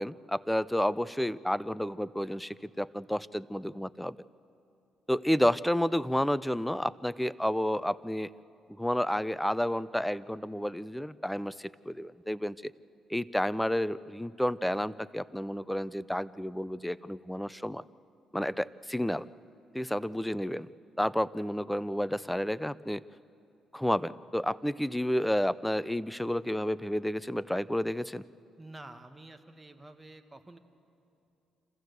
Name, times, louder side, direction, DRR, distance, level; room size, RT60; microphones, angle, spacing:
voice 1, 0.0-4.2 5.1-8.3 8.8-12.7 13.1-17.8 18.3-19.3 19.7-20.7 21.0-23.0 23.7-28.2, equal, 5° left, 17 dB, 0.4 m, -30 dB
voice 2, 28.6-30.6, right 2 dB, 15° right, 7 dB, 1.4 m, -49 dB
26.0 x 15.0 x 8.0 m, 2.6 s
cardioid pair, 90°, 0 cm